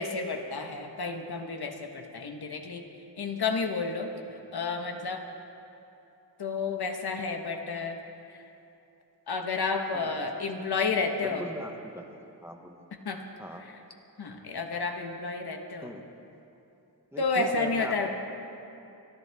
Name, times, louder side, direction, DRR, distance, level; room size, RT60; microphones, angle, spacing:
voice 1, 0.0-2.8 3.2-4.1 4.5-5.2 6.4-8.0 8.3-8.4 9.3-11.4 13.0-13.2 13.6-13.8 14.2-15.9 17.2-18.1, left 4 dB, 60° left, 4 dB, 1.3 m, -31 dB
voice 2, 11.2-12.1 12.4-12.8 13.4-13.6 15.8-16.1 17.1-18.1, equal, 5° right, 3 dB, 1.0 m, -40 dB
26.0 x 11.5 x 3.5 m, 2.8 s
wide cardioid pair, 115°, 42 cm